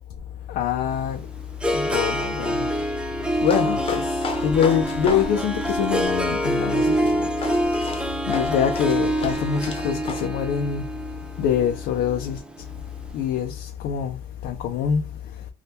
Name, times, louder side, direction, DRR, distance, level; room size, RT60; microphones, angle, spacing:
voice 1, 0.5-1.3 1.7-2.8 3.3-7.3 7.6-10.9 11.4-12.4 13.1-15.1, left 8 dB, 75° left, 0.5 m, -25 dB
Harp, 0.9-13.1, right 1 dB, 5° right, 0.5 m, -26 dB
sound 1, 3.3-10.3, left 4 dB, 30° left, 0.8 m, -36 dB
3.5 x 2.3 x 2.8 m
cardioid pair, 110°, 17 cm